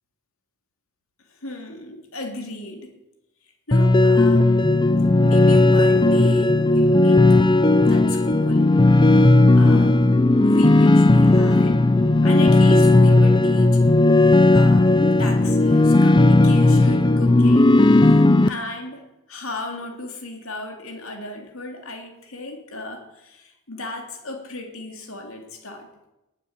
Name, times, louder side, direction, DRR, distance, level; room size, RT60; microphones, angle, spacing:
voice 1, 1.3-3.0 3.7-4.8 5.2-7.3 7.8-8.7 9.6-10.0 10.4-11.9 12.2-13.8 14.5-14.9 15.2-25.9, left 2 dB, 60° left, 3 dB, 3.1 m, -35 dB
sound 1, 3.7-18.5, left 2 dB, 20° left, 0.5 m, -15 dB
19.0 x 9.0 x 8.2 m, 0.95 s
head